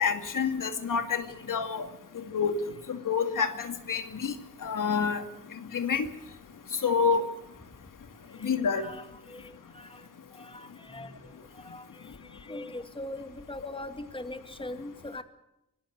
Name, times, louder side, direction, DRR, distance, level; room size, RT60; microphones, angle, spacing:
voice 1, 0.0-1.9 2.1-2.6 2.9-4.3 4.6-5.2 5.5-6.1 6.7-7.3 8.4-8.8, left 6 dB, 75° left, 7 dB, 2.5 m, -28 dB
voice 2, 8.4-10.1 10.3-11.2 11.6-15.2, left 1 dB, 15° left, 9 dB, 2.1 m, -42 dB
25.0 x 20.0 x 6.6 m, 0.84 s
cardioid pair, 80°, 32 cm